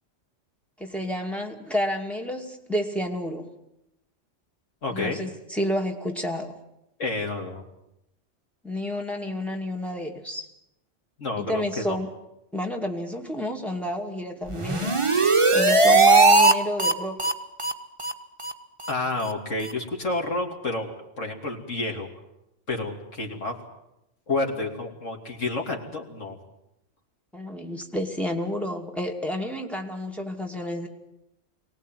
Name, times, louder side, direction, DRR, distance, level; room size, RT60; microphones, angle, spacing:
voice 1, 0.8-3.5 4.9-6.6 8.6-10.5 11.4-12.1 12.5-17.2 27.3-30.9, left 1 dB, ahead, 2 dB, 2.4 m, -30 dB
voice 2, 4.8-5.2 7.0-7.6 11.2-12.0 18.9-22.1 22.7-23.5 24.3-26.4, left 2 dB, 85° left, 1 dB, 3.3 m, -29 dB
sound 1, 14.5-16.5 16.8-16.9 17.2-17.3 17.6-17.7 18.0-18.1 18.4-18.5 18.8-18.9 19.2-19.3 19.6-19.7, right 3 dB, 25° right, 1.2 m, -18 dB
23.5 x 18.0 x 9.2 m, 0.86 s
omnidirectional pair, 1.3 m